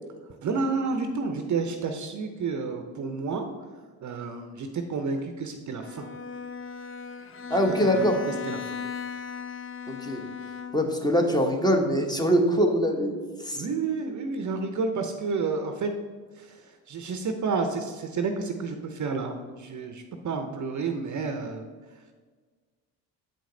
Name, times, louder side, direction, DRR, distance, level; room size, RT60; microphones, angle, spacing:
voice 1, 0.4-3.5 4.0-6.1 7.8-8.8 13.5-15.9 16.3-21.7, right 4 dB, 40° right, 6 dB, 0.7 m, -30 dB
Bowed string instrument, 5.8-11.1, left 6 dB, 30° left, 0.5 m, -37 dB
voice 2, 7.5-8.1 9.9-10.2 10.7-13.6, equal, 10° left, 3 dB, 1.0 m, -23 dB
7.7 x 5.1 x 3.8 m, 1.5 s
supercardioid pair, 70°, 44 cm